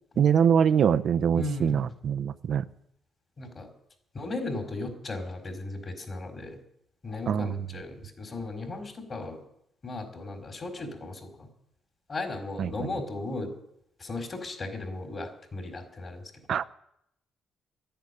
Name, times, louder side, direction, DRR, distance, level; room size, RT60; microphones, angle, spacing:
voice 1, 0.2-2.6 7.3-7.6 12.6-12.7 16.5-16.6, right 8 dB, 65° right, 11 dB, 0.6 m, -23 dB
voice 2, 1.4-1.9 3.4-3.7 4.1-6.6 7.0-9.4 9.8-11.5 12.1-13.5 14.0-16.3, left 2 dB, 40° left, 3 dB, 4.5 m, -36 dB
12.0 x 10.5 x 10.0 m, 0.77 s
cardioid pair, 90°, 0 cm